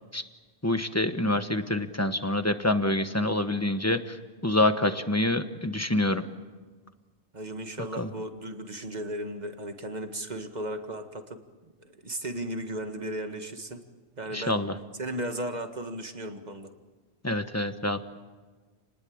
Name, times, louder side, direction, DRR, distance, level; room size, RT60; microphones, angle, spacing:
voice 1, 0.6-4.2 4.4-6.2 8.0-8.1 14.3-14.7 17.2-18.1, left 1 dB, 15° left, 9 dB, 1.2 m, -26 dB
voice 2, 7.3-11.4 11.8-13.8 14.2-14.6 15.0-16.7, right 1 dB, 40° right, 6 dB, 2.0 m, -35 dB
29.5 x 20.0 x 8.8 m, 1.4 s
omnidirectional pair, 1.1 m